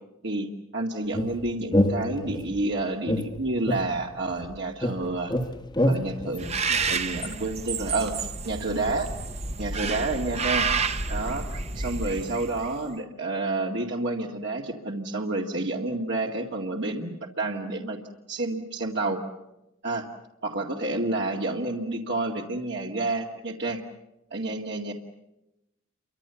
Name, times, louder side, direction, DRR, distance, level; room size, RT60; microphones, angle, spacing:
voice 1, 0.7-5.4 5.8-9.1 9.6-10.7 11.1-18.0 18.3-19.2 19.8-20.1 20.4-23.8 24.3-24.9, right 2 dB, 55° right, -1 dB, 2.2 m, -29 dB
sound 1, 1.1-2.6 3.1-4.5 4.8-7.3, left 1 dB, 20° left, 1.3 m, -27 dB
Bird, 6.4-12.8, right 4 dB, 30° right, 1.1 m, -30 dB
29.5 x 24.5 x 7.0 m, 0.91 s
head